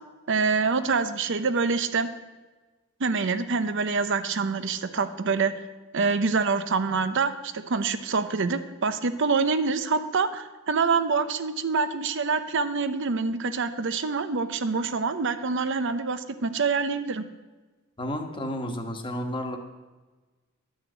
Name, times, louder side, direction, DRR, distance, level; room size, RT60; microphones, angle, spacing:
voice 1, 0.3-2.1 3.0-5.5 5.9-17.2, right 4 dB, 60° right, 11 dB, 0.7 m, -26 dB
voice 2, 18.0-19.6, equal, 25° left, 4 dB, 1.3 m, -31 dB
11.0 x 6.5 x 8.0 m, 1.2 s
head